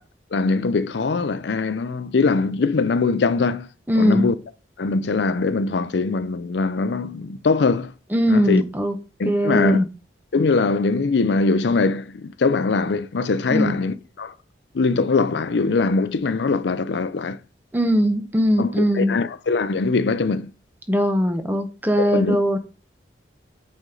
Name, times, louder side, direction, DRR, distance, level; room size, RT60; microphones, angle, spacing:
voice 1, 0.3-3.7 4.0-4.3 4.8-7.9 8.3-8.6 9.2-9.8 10.3-14.3 14.7-17.4 18.6-20.5 22.0-22.4, left 4 dB, 75° left, 0.5 m, -22 dB
voice 2, 3.9-4.3 8.1-9.0 9.2-9.9 13.5-13.8 17.7-19.2 20.9-22.6, equal, 10° right, 0.7 m, -20 dB
8.0 x 4.4 x 3.8 m
head